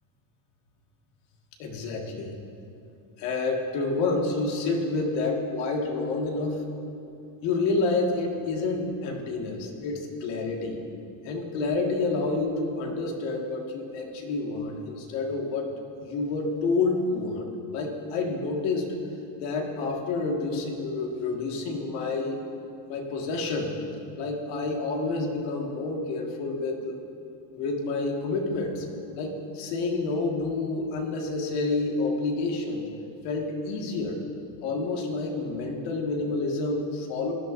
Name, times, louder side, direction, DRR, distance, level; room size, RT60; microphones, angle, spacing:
voice 1, 1.6-2.3 3.2-6.6 7.4-10.8 11.2-15.7 16.0-19.0 19.4-22.4 22.9-23.7 24.2-27.0 27.5-28.9 29.1-32.9 33.2-34.2 34.6-37.3, left 3 dB, 90° left, 0 dB, 1.9 m, -29 dB
18.0 x 11.5 x 2.6 m, 2.7 s
cardioid pair, 130°, 42 cm